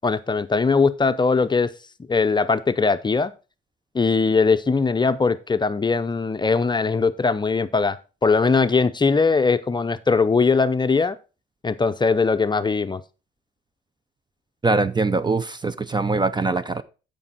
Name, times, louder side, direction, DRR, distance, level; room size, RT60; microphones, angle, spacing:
voice 1, 0.0-1.7 2.1-3.3 3.9-11.2 11.6-13.0, left 4 dB, 20° left, 0.6 m, -20 dB
voice 2, 14.6-16.8, right 3 dB, 20° right, 0.5 m, -22 dB
13.5 x 5.2 x 4.1 m
cardioid pair, 90°, 20 cm